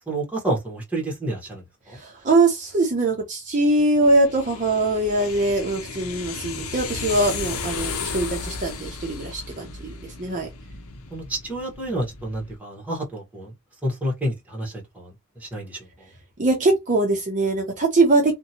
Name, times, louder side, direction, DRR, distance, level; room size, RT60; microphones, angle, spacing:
voice 1, 0.1-2.0 11.1-13.5 13.8-15.9, right 1 dB, 5° right, 1.0 m, -29 dB
voice 2, 1.9-10.5 16.4-18.3, right 2 dB, 35° right, 0.6 m, -22 dB
sound 1, 4.0-12.6, left 5 dB, 80° left, 0.6 m, -34 dB
2.7 x 2.2 x 2.8 m
head